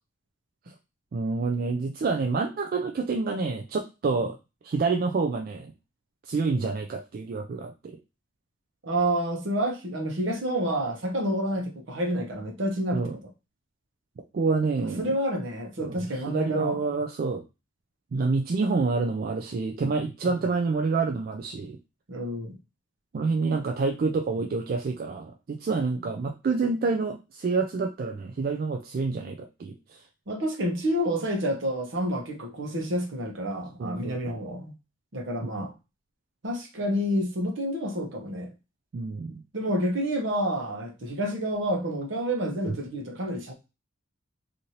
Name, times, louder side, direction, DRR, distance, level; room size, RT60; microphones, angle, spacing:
voice 1, 1.1-4.4 4.6-5.7 6.2-8.0 12.9-13.2 14.3-15.2 15.8-17.4 18.1-21.8 23.1-30.0 33.8-34.4 35.6-35.7 38.9-39.4 42.7-42.8, right 4 dB, 45° right, 0.3 m, -28 dB
voice 2, 8.8-13.0 15.0-16.8 22.1-22.6 30.3-34.7 35.1-35.7 36.4-38.5 39.5-43.5, equal, 65° right, 0.8 m, -29 dB
3.0 x 2.6 x 2.7 m
head